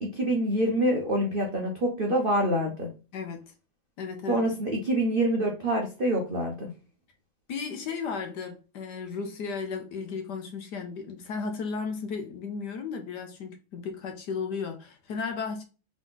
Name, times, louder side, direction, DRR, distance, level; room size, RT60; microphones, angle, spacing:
voice 1, 0.0-2.9 4.3-6.7, right 1 dB, 55° right, 0.6 m, -26 dB
voice 2, 4.0-4.7 7.5-15.6, left 5 dB, 65° left, 1.2 m, -35 dB
3.7 x 3.6 x 3.7 m
omnidirectional pair, 2.2 m